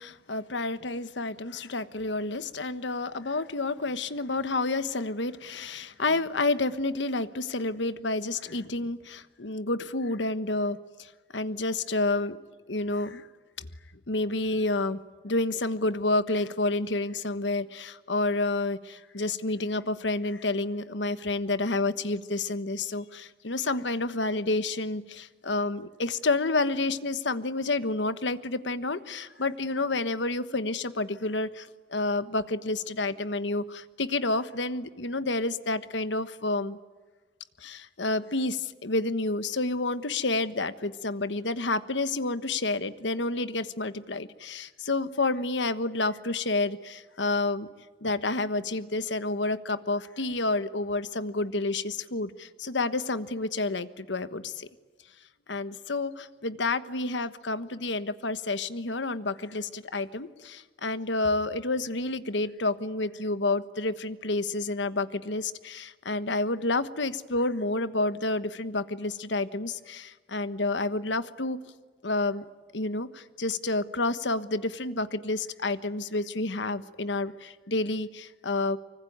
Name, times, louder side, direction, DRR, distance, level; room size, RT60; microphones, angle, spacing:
voice 1, 0.0-12.4 12.7-13.3 13.6-13.7 14.1-36.8 37.6-47.7 48.0-54.7 55.5-71.6 72.0-72.4 72.7-78.8, left 2 dB, 75° left, 12 dB, 1.3 m, -29 dB
25.0 x 24.5 x 9.4 m, 1.4 s
head